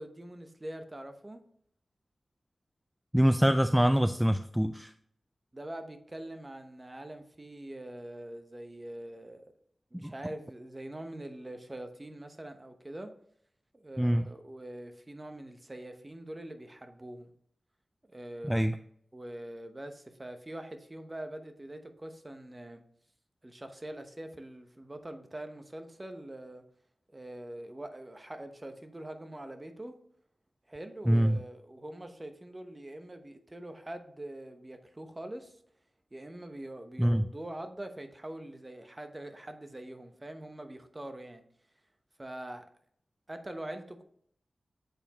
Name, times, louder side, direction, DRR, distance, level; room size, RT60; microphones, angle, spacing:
voice 1, 0.0-1.4 5.5-9.4 9.9-13.1 13.7-17.3 18.1-18.6 19.1-22.8 23.4-26.6 27.1-29.9 30.7-35.6 36.1-41.4 42.2-42.6 43.3-44.0, right 1 dB, 30° right, 7 dB, 0.9 m, -44 dB
voice 2, 3.1-4.9 10.0-10.1 14.0-14.2 18.4-18.8 31.1-31.4 37.0-37.2, equal, 5° right, 9 dB, 0.3 m, -24 dB
7.8 x 4.4 x 2.9 m, 0.66 s
cardioid pair, 55°, 0 cm